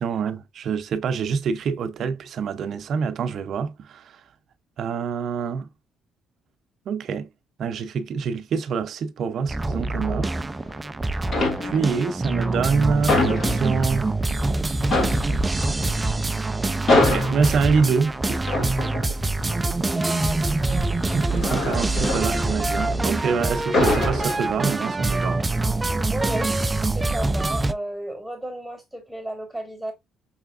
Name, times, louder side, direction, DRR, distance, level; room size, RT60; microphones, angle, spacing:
voice 1, 0.0-4.2 4.8-5.7 6.9-7.3 7.6-10.3 11.6-14.1 16.9-18.4 21.1-25.4, right 5 dB, 55° right, 0.6 m, -26 dB
sound 1, 9.5-27.7, right 2 dB, 15° right, 0.4 m, -25 dB
sound 2, 10.2-10.9 11.2-12.1 12.4-14.2 14.5-14.6 14.8-23.2 23.5-25.0 25.4-25.6, left 2 dB, 45° left, 2.1 m, -26 dB
voice 2, 19.8-21.0 25.8-29.9, right 1 dB, ahead, 2.3 m, -33 dB
5.6 x 3.3 x 2.5 m
cardioid pair, 115°, 0 cm